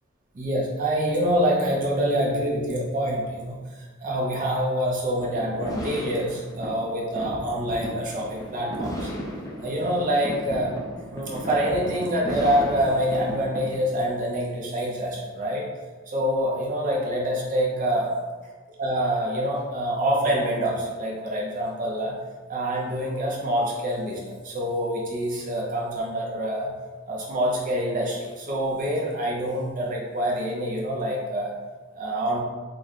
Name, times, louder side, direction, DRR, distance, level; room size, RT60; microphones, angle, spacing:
voice 1, 0.3-3.6 4.0-9.1 9.6-10.7 11.1-15.7 16.1-18.1 18.8-22.2 22.5-26.7 27.1-31.5 31.9-32.4, equal, 40° right, -3 dB, 0.5 m, -26 dB
sound 1, 5.2-14.1, equal, 15° left, 0.5 m, -35 dB
3.2 x 2.1 x 3.9 m, 1.4 s
head